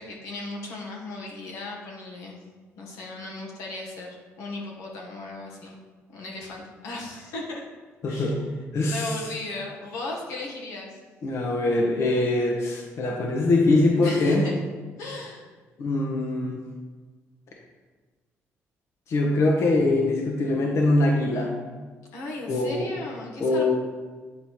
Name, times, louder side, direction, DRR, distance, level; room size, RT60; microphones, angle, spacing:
voice 1, 0.0-2.4 2.8-5.8 6.1-7.6 8.1-8.3 8.8-11.0 14.0-14.6 15.0-15.4 22.1-23.7, left 2 dB, 90° left, -2 dB, 1.3 m, -36 dB
voice 2, 8.0-8.4 8.7-9.2 11.2-14.4 15.8-16.6 19.1-21.5 22.5-22.9 23.4-23.7, left 2 dB, 60° left, -1 dB, 1.0 m, -23 dB
8.6 x 4.1 x 3.1 m, 1.4 s
cardioid pair, 85°, 5 cm